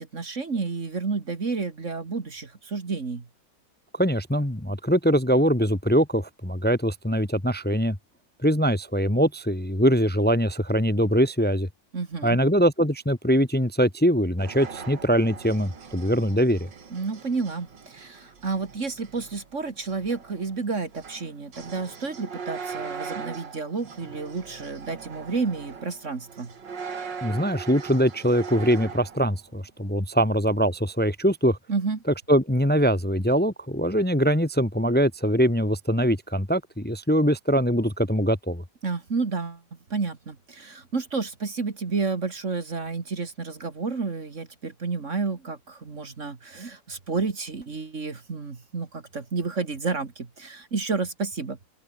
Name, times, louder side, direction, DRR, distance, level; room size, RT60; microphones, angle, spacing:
voice 1, 0.0-3.3 11.9-12.4 16.9-26.5 31.7-32.0 38.8-39.6 39.9-51.6, right 4 dB, 40° right, 2.3 m, -30 dB
voice 2, 3.9-8.0 8.4-11.7 12.2-16.7 27.2-31.6 32.3-38.6, equal, 5° left, 1.6 m, -22 dB
sound 1, 14.4-29.4, right 5 dB, 75° right, 3.0 m, -40 dB
open air
omnidirectional pair, 2.0 m